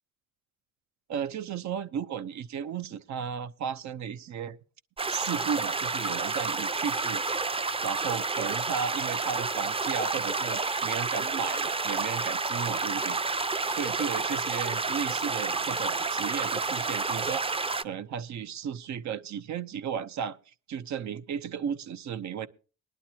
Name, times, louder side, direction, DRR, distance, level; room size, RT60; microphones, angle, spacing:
voice 1, 1.1-4.6 5.1-7.2 7.8-13.2 13.7-17.4 17.8-20.4 20.7-22.5, right 7 dB, 65° right, 0.9 m, -34 dB
sound 1, 5.0-17.8, right 3 dB, 20° right, 0.6 m, -30 dB
20.0 x 11.0 x 2.9 m
cardioid pair, 90°, 30 cm